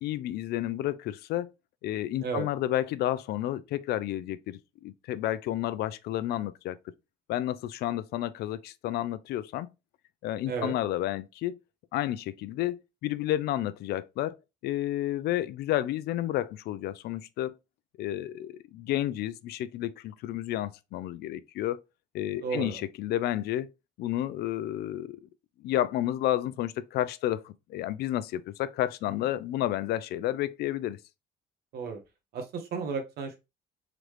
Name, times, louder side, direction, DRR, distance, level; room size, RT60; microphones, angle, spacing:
voice 1, 0.0-1.5 1.8-6.8 7.3-9.7 10.2-11.6 11.9-14.4 14.6-17.6 18.0-21.8 22.1-23.7 24.0-25.3 25.6-31.0, left 13 dB, 70° left, 0.4 m, -31 dB
voice 2, 10.4-10.7 22.4-22.8 31.7-32.0 32.3-33.4, right 5 dB, 70° right, 1.0 m, -33 dB
3.8 x 3.2 x 3.2 m
cardioid pair, 110°, 17 cm